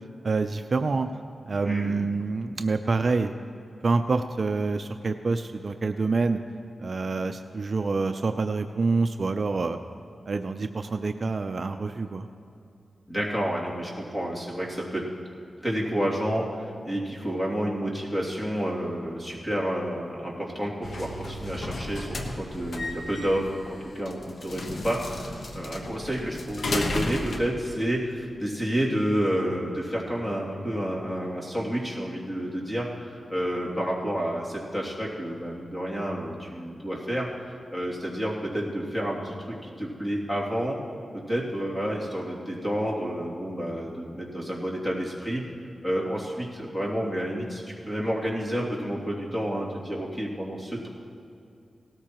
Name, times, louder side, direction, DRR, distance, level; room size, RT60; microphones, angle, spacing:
voice 1, 0.2-1.1 1.5-3.3 3.8-6.4 6.8-9.8 10.3-12.3, right 3 dB, 50° right, 7 dB, 0.5 m, -27 dB
voice 2, 1.6-2.1 13.1-15.0 15.6-40.8 41.1-45.4 45.8-50.9, equal, 10° left, -4 dB, 2.6 m, -30 dB
sound 1, 20.8-27.4, left 2 dB, 65° left, 1.2 m, -34 dB
18.0 x 13.5 x 3.0 m, 2.6 s
wide cardioid pair, 80°, 0 cm